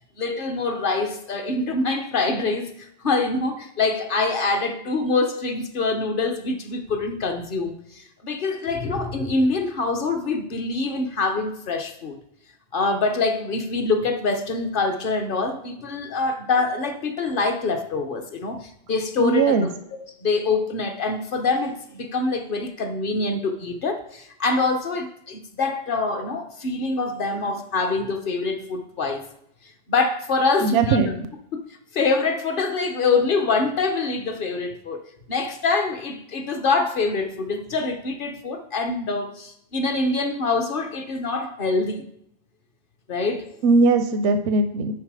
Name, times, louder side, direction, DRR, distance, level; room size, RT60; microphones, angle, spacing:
voice 1, 0.2-12.2 12.7-19.7 20.2-29.3 29.9-31.0 31.5-31.6 31.9-42.0 43.1-43.5, left 3 dB, 50° left, 1.0 m, -25 dB
voice 2, 19.2-19.7 30.6-31.1 43.6-44.9, right 4 dB, 85° right, 0.9 m, -19 dB
10.0 x 4.0 x 4.8 m
omnidirectional pair, 1.2 m